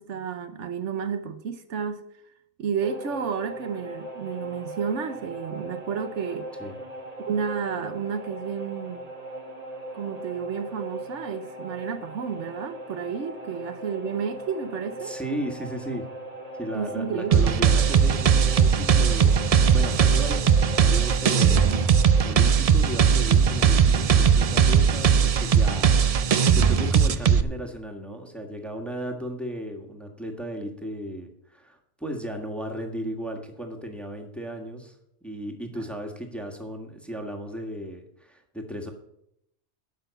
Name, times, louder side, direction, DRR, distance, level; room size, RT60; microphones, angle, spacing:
voice 1, 0.0-2.0 2.6-6.5 7.3-9.0 9.9-15.2 16.7-17.6 35.7-35.8, right 6 dB, 90° right, 1.2 m, -31 dB
sound 1, 2.8-22.2, right 2 dB, 35° right, 1.7 m, -39 dB
voice 2, 15.0-16.0 16.6-34.9 35.2-38.9, equal, ahead, 1.5 m, -35 dB
sound 2, 17.3-27.4, right 7 dB, 55° right, 0.4 m, -19 dB
11.5 x 5.9 x 6.9 m
omnidirectional pair, 1.2 m